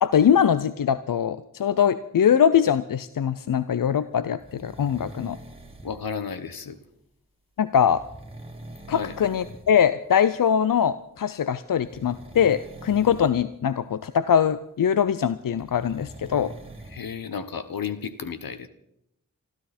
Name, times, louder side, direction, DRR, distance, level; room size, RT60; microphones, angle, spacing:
voice 1, 0.0-5.4 7.6-8.0 8.9-16.5, left 8 dB, 70° left, 14 dB, 0.6 m, -22 dB
sound 1, 4.4-6.0 7.9-9.7 10.0-10.3 11.7-13.4 15.5-17.0, right 1 dB, 15° right, 2.4 m, -43 dB
voice 2, 5.8-6.8 8.9-9.1 16.9-18.7, left 6 dB, 90° left, 10 dB, 1.1 m, -33 dB
25.5 x 13.0 x 4.3 m, 0.79 s
wide cardioid pair, 55°, 34 cm